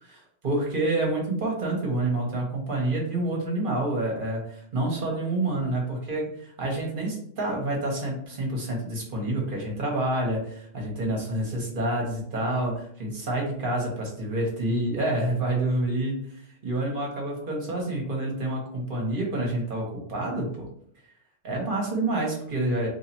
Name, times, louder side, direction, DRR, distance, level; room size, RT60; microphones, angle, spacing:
voice 1, 0.0-16.3 16.6-20.7 21.4-22.9, right 1 dB, 45° right, -1 dB, 1.2 m, -28 dB
3.2 x 2.8 x 4.1 m, 0.66 s
omnidirectional pair, 1.3 m